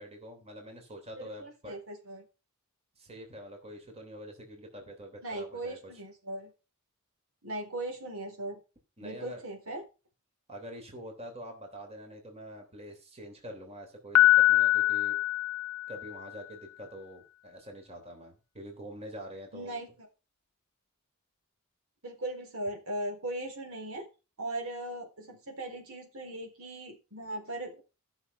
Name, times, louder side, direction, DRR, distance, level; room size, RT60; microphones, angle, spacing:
voice 1, 0.0-1.7 3.0-5.9 9.0-9.4 10.5-15.2 15.9-19.8, equal, 30° right, 3 dB, 3.3 m, -45 dB
voice 2, 1.2-2.3 5.2-6.5 7.4-8.6 9.0-9.8 19.5-20.1 22.0-24.1 24.4-27.8, right 1 dB, 70° right, 2 dB, 4.1 m, -38 dB
Piano, 14.1-16.3, left 15 dB, 85° left, 0.7 m, -23 dB
14.5 x 6.6 x 5.3 m, 0.31 s
head